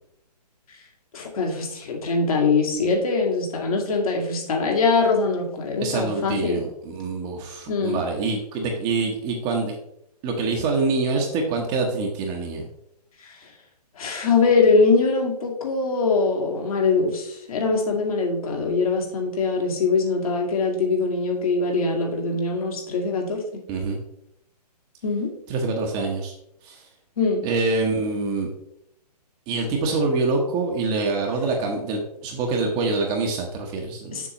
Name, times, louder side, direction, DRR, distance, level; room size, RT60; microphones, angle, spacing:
voice 1, 1.1-6.6 7.7-8.0 13.2-13.4 14.0-23.4 25.0-25.4 27.2-27.4 34.1-34.3, left 4 dB, 55° left, 1 dB, 2.1 m, -22 dB
voice 2, 5.8-9.7 10.2-12.7 23.7-24.0 25.5-26.3 26.6-26.8 27.4-28.5 29.5-34.2, right 3 dB, 25° right, 1 dB, 1.1 m, -25 dB
7.2 x 6.5 x 3.0 m, 0.76 s
figure-of-eight pair, 130°, 21 cm